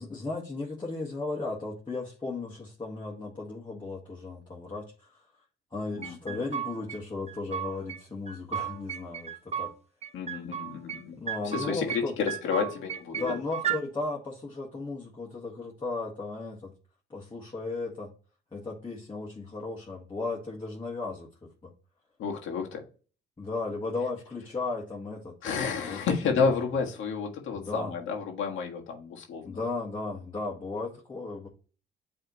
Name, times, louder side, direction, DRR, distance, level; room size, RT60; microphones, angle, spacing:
voice 1, 0.0-5.2 5.7-9.7 11.2-12.2 13.1-16.7 17.1-18.1 18.5-21.7 23.4-26.5 27.5-27.9 29.5-31.5, left 3 dB, 25° left, -3 dB, 1.8 m, -35 dB
voice 2, 6.0-6.4 10.1-13.4 22.2-22.8 25.4-29.6, left 5 dB, 80° left, 1 dB, 1.7 m, -31 dB
sound 1, 6.0-7.0 7.3-8.0 8.3-9.7 10.0-11.0 11.3-12.0 12.3-13.8, right 9 dB, 35° right, 0.9 m, -34 dB
8.9 x 3.6 x 3.0 m, 0.38 s
cardioid pair, 90°, 20 cm